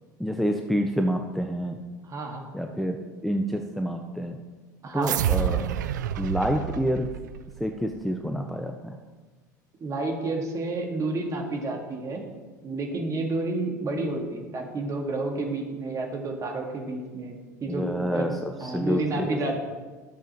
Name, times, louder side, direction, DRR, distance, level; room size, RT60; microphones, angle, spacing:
voice 1, 0.2-1.8 2.5-4.4 4.9-5.7 6.2-7.1 7.6-9.0 17.7-19.6, equal, ahead, 3 dB, 0.6 m, -28 dB
voice 2, 2.0-2.5 4.8-5.2 9.8-12.2 12.6-18.3 18.6-19.6, right 2 dB, 35° right, 1 dB, 1.9 m, -30 dB
sound 1, 5.0-7.8, right 10 dB, 75° right, 0.4 m, -28 dB
12.5 x 6.8 x 3.1 m, 1.3 s
hypercardioid pair, 75°, 10 cm